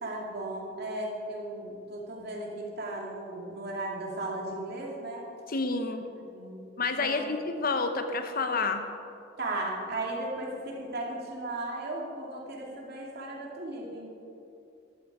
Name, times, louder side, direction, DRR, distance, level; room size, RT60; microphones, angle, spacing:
voice 1, 0.0-5.3 6.1-6.6 6.9-7.3 9.4-14.1, right 2 dB, 55° right, -2 dB, 2.7 m, -36 dB
voice 2, 5.5-6.0 6.8-8.8, left 3 dB, 50° left, 7 dB, 0.9 m, -29 dB
13.5 x 12.5 x 4.9 m, 2.7 s
head